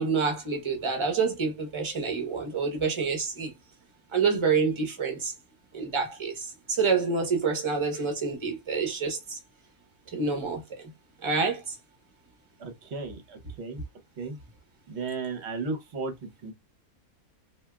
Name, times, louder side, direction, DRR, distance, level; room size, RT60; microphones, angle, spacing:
voice 1, 0.0-3.5 4.1-5.3 5.7-9.4 10.1-10.9 11.2-11.8, right 5 dB, 25° right, 0.7 m, -27 dB
voice 2, 12.6-13.8 14.2-14.4 14.9-16.5, right 4 dB, 55° right, 1.0 m, -35 dB
3.4 x 2.6 x 2.2 m
omnidirectional pair, 1.5 m